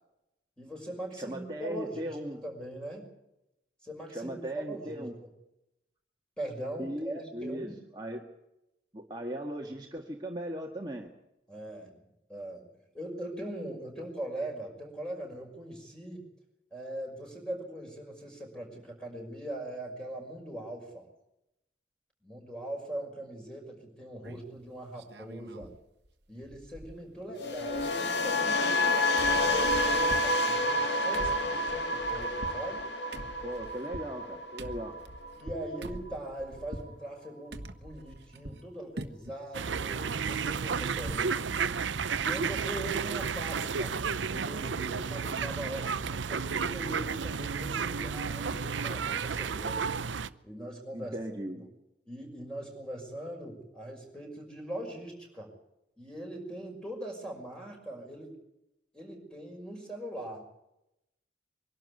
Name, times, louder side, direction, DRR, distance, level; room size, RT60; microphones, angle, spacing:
voice 1, 0.6-3.1 3.8-5.1 6.4-7.8 11.5-12.0 12.3-12.7 12.9-16.2 16.7-21.1 22.2-25.7 26.3-32.9 35.4-41.5 42.2-44.0 44.3-49.9 50.4-51.2 51.5-51.6 52.1-55.5 56.0-58.4 58.9-60.5, right 1 dB, 5° left, 1 dB, 5.9 m, -41 dB
voice 2, 1.2-2.4 4.1-5.2 6.8-8.3 8.9-11.1 33.4-35.0 50.9-51.6, right 1 dB, 25° right, 0 dB, 1.8 m, -38 dB
sound 1, 24.2-24.6 25.0-25.8 26.1-26.2 26.4-27.3 27.5-28.9 29.2-36.9 37.5-38.7 39.0-39.4 39.8-41.4 41.7-41.8 42.1-42.3, right 1 dB, 60° right, 1.4 m, -45 dB
sound 2, 27.4-35.5 35.7-36.1, left 1 dB, 70° left, 2.2 m, -29 dB
sound 3, 39.5-50.3, right 6 dB, 85° right, 0.7 m, -32 dB
23.5 x 12.0 x 9.5 m, 0.88 s
head